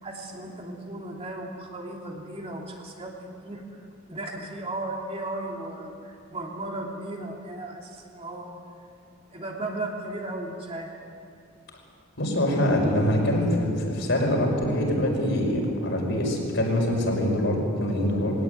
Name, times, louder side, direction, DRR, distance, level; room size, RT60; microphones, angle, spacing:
voice 1, 0.0-3.1 3.4-3.6 4.1-8.5 9.3-10.9, right 2 dB, 30° right, 0 dB, 2.8 m, -35 dB
voice 2, 12.2-18.4, left 1 dB, 60° left, 0 dB, 5.6 m, -24 dB
21.5 x 18.0 x 9.3 m, 2.4 s
head